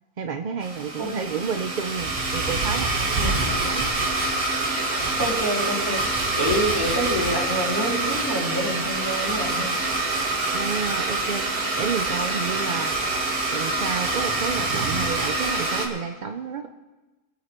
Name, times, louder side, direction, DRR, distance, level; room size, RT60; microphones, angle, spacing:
voice 1, 0.2-3.9 10.5-11.5 11.8-12.9 13.5-16.7, right 6 dB, 55° right, 6 dB, 0.5 m, -30 dB
Domestic sounds home sounds, 0.6-15.9, right 2 dB, 75° right, 2.2 m, -26 dB
voice 2, 3.2-3.6 5.2-9.7, equal, 15° right, -4 dB, 2.8 m, -27 dB
22.5 x 8.2 x 4.5 m, 1.2 s
omnidirectional pair, 1.6 m